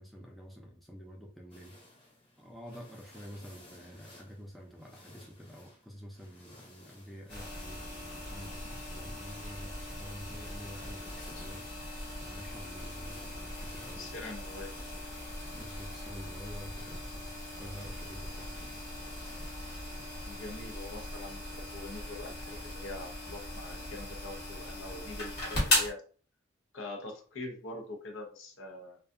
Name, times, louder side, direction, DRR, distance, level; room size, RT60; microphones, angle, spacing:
voice 1, 0.0-1.8 2.4-14.2 15.5-17.3 17.6-18.7, equal, ahead, 0.3 m, -48 dB
sound 1, 1.5-20.3, left 1 dB, 25° left, 0.8 m, -57 dB
sound 2, 7.3-25.9, left 1 dB, 55° left, 1.0 m, -38 dB
voice 2, 10.8-11.5 13.9-14.9 20.2-26.0 26.7-29.0, left 2 dB, 75° left, 0.6 m, -44 dB
2.6 x 2.3 x 2.4 m
head